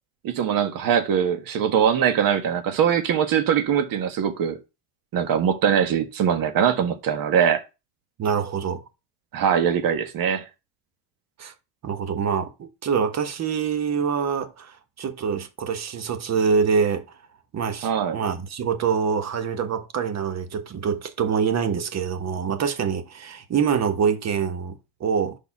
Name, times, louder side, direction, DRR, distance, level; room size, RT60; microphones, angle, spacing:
voice 1, 0.2-4.6 5.1-7.6 9.3-10.4 17.8-18.2, right 8 dB, 60° right, 1.5 m, -22 dB
voice 2, 8.2-8.8 11.4-11.5 11.8-17.1 17.5-25.4, right 6 dB, 45° right, 1.3 m, -25 dB
5.4 x 4.3 x 5.9 m
supercardioid pair, 95°, 38 cm